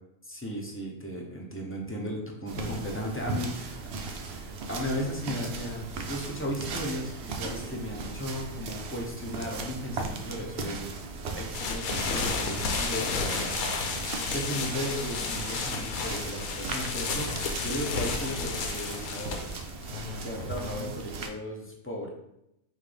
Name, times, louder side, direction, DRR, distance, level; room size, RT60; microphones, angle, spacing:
voice 1, 0.2-3.9 4.2-10.9 11.3-13.6 13.9-19.5 20.2-22.1, equal, 20° left, -1 dB, 0.4 m, -36 dB
sound 1, 2.5-21.3, right 4 dB, 60° right, 0.7 m, -38 dB
sound 2, 11.5-21.1, left 4 dB, 80° left, 1.1 m, -32 dB
5.9 x 2.6 x 3.4 m, 0.82 s
omnidirectional pair, 1.5 m